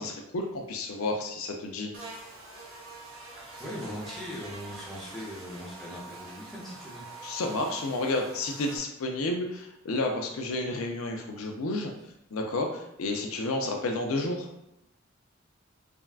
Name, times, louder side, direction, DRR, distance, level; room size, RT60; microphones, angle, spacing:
voice 1, 0.0-1.9 7.2-11.9 12.3-14.5, left 2 dB, 80° left, 2 dB, 0.4 m, -31 dB
Buzz, 1.9-8.8, right 3 dB, 80° right, 0.7 m, -45 dB
voice 2, 3.6-7.1, equal, ahead, -6 dB, 0.6 m, -40 dB
3.5 x 2.2 x 2.3 m, 0.84 s
head